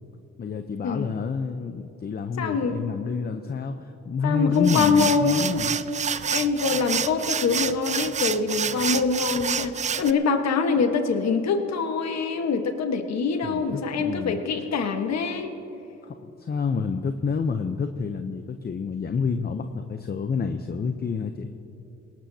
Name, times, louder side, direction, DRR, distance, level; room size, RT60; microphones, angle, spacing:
voice 1, 0.4-5.8 13.4-14.4 16.0-21.6, left 5 dB, 30° left, 8 dB, 0.7 m, -28 dB
voice 2, 2.4-2.8 4.2-5.4 6.3-15.5, left 5 dB, 60° left, 6 dB, 1.4 m, -24 dB
sound 1, 4.5-10.1, right 7 dB, 25° right, 0.3 m, -28 dB
19.5 x 18.0 x 2.8 m, 2.9 s
cardioid pair, 90°, 30 cm